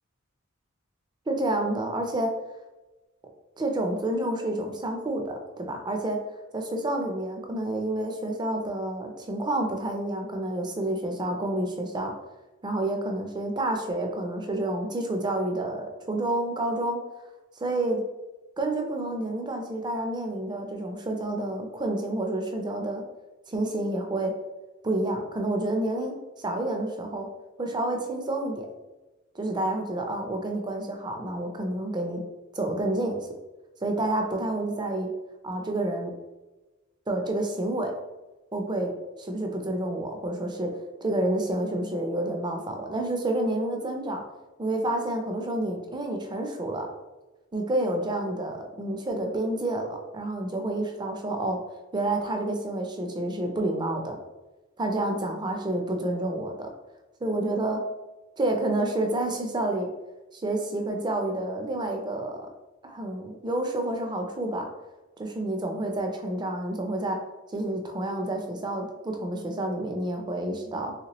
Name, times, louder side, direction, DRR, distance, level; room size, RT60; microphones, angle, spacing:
voice 1, 1.3-2.3 3.6-6.2 6.5-12.1 12.6-17.0 17.6-18.0 18.6-23.0 23.5-24.3 24.8-27.3 27.6-28.7 29.3-32.2 32.5-33.3 33.8-35.1 35.4-36.1 37.1-37.9 38.5-40.7 41.0-44.2 44.6-46.9 47.5-49.9 50.1-51.6 51.9-54.2 54.8-56.7 57.2-57.8 58.4-59.9 60.3-62.5 62.8-64.7 65.2-67.2 67.5-70.9, right 1 dB, 20° right, 3 dB, 0.4 m, -29 dB
3.1 x 2.8 x 2.9 m, 1.1 s
head